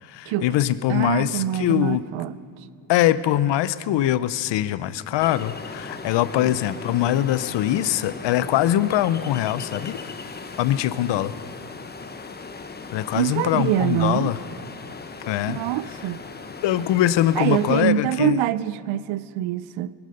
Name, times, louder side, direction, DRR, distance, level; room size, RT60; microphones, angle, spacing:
voice 1, 0.0-2.0 2.9-10.0 10.6-11.3 12.9-14.4 15.3-15.6 16.6-18.4, left 13 dB, 70° left, 16 dB, 0.7 m, -22 dB
voice 2, 0.9-2.3 13.1-14.3 15.5-16.2 17.4-19.9, right 12 dB, 90° right, 17 dB, 0.6 m, -24 dB
Ocean, 5.2-17.8, left 4 dB, 20° left, 0.9 m, -38 dB
21.0 x 11.5 x 5.4 m, 2.4 s
cardioid pair, 90°, 46 cm